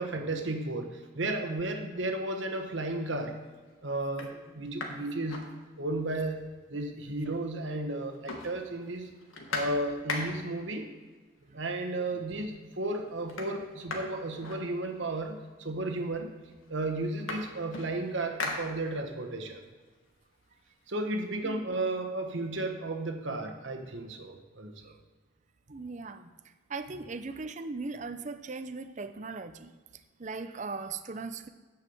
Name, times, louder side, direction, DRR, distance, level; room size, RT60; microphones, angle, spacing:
voice 1, 0.0-3.4 3.8-5.4 5.8-6.4 6.7-9.1 9.5-10.9 11.5-16.3 16.7-19.6 20.9-24.9, right 2 dB, 65° right, 4 dB, 1.2 m, -33 dB
sound 1, 2.7-3.1 3.6-3.7 4.0-6.1 6.5-6.6 6.8-7.6 7.9-10.6 11.6-11.7 12.1-12.6 12.8-15.2 16.0-16.1 16.4-19.3 19.7-21.4, left 3 dB, 80° left, 1.6 m, -40 dB
voice 2, 25.7-29.8 30.2-31.5, right 4 dB, 35° right, 10 dB, 0.5 m, -39 dB
9.7 x 4.7 x 7.0 m, 1.4 s
head